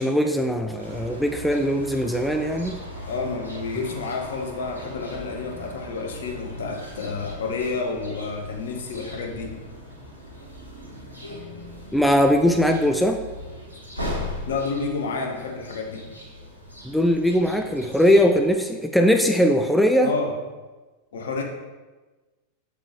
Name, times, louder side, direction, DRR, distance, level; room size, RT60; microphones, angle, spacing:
voice 1, 0.0-2.8 11.9-13.2 16.8-20.1, equal, ahead, 5 dB, 0.4 m, -20 dB
sound 1, 0.8-18.5, left 1 dB, 85° left, 1.7 m, -38 dB
voice 2, 3.0-9.6 14.5-16.1 20.0-20.3 21.1-21.4, left 4 dB, 60° left, 2 dB, 1.2 m, -30 dB
7.3 x 6.9 x 3.1 m, 1.2 s
figure-of-eight pair, 90°, 0 cm